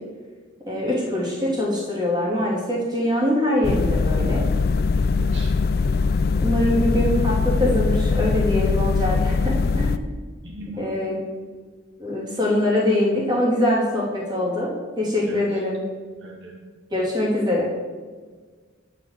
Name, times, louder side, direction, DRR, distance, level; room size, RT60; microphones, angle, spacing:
voice 1, 0.7-4.4 6.4-10.0 10.8-11.2 12.0-15.8 16.9-17.7, left 1 dB, 20° right, -5 dB, 3.1 m, -23 dB
sound 1, 3.6-10.0, left 4 dB, 50° left, 0.4 m, -21 dB
voice 2, 5.0-5.5 10.4-10.9 15.2-15.5 16.2-16.5, equal, 55° right, -3 dB, 2.4 m, -38 dB
9.9 x 5.9 x 7.5 m, 1.5 s
head